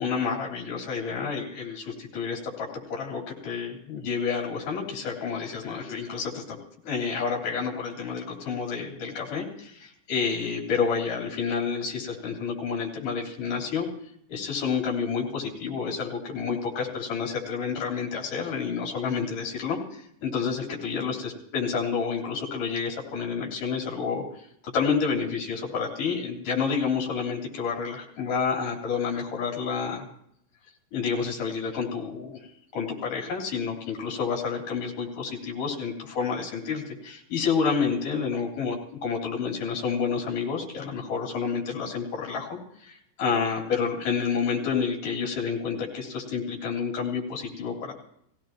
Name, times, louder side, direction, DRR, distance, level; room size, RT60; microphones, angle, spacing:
voice 1, 0.0-6.6 6.8-13.9 14.3-24.2 24.7-30.0 30.9-32.5 32.7-47.9, left 5 dB, 50° left, -1 dB, 4.7 m, -29 dB
20.5 x 16.5 x 3.0 m, 0.70 s
omnidirectional pair, 5.1 m